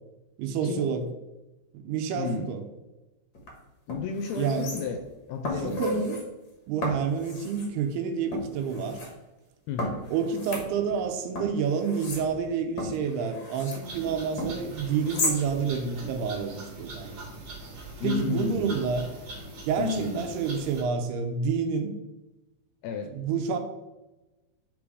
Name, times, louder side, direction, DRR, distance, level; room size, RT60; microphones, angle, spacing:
voice 1, 0.4-1.1 1.7-2.6 4.3-4.7 5.6-6.2 6.7-9.0 10.1-17.2 18.0-19.1 19.7-22.0 23.1-23.6, right 6 dB, 80° right, 6 dB, 2.6 m, -29 dB
voice 2, 2.2-2.5 3.9-5.0 5.3-6.0 9.7-10.0 18.0-18.7 19.8-20.3 22.8-23.1, left 5 dB, 80° left, 6 dB, 2.4 m, -32 dB
sound 1, 3.3-3.5 3.9-5.1 5.4-6.2 6.8-7.7 8.3-9.1 9.8-11.1 11.4-13.8 14.4-15.4 15.7-15.8, left 1 dB, 65° left, 1.2 m, -34 dB
sound 2, 13.8-20.8, right 2 dB, 40° right, 2.4 m, -42 dB
8.7 x 3.7 x 4.8 m, 1.0 s
omnidirectional pair, 4.8 m